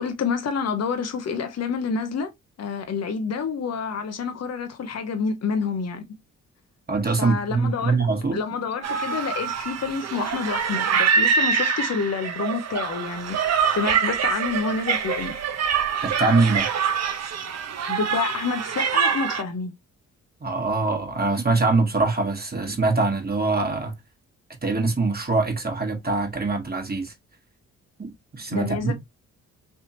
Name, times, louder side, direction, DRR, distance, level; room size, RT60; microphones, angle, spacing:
voice 1, 0.0-2.3 2.6-6.0 7.2-8.0 8.3-15.4 17.9-19.7 28.5-28.9, left 5 dB, 45° left, 0.9 m, -28 dB
voice 2, 6.9-8.4 16.0-16.7 20.4-23.9 24.6-27.1 28.0-28.9, right 3 dB, 25° right, 1.3 m, -23 dB
sound 1, 8.8-19.4, right 6 dB, 45° right, 0.7 m, -25 dB
3.4 x 2.8 x 2.9 m
hypercardioid pair, 45°, 36 cm